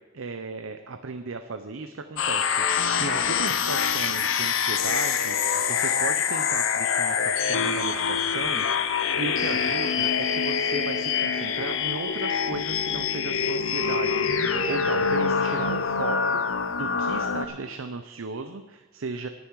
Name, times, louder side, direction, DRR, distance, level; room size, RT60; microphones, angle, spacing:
voice 1, 0.1-19.3, right 3 dB, 85° right, 7 dB, 0.7 m, -36 dB
sound 1, 2.2-17.5, left 6 dB, 70° left, 0.7 m, -25 dB
19.0 x 7.1 x 4.7 m, 1.2 s
head